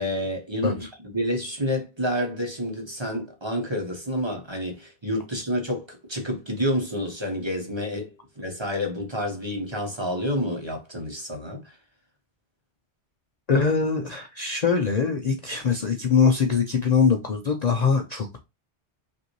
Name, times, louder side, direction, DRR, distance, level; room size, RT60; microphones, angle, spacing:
voice 1, 0.0-11.8, equal, 25° right, 0.9 m, -29 dB
voice 2, 13.5-18.4, left 5 dB, 50° left, 0.5 m, -22 dB
5.3 x 2.6 x 3.0 m
omnidirectional pair, 1.1 m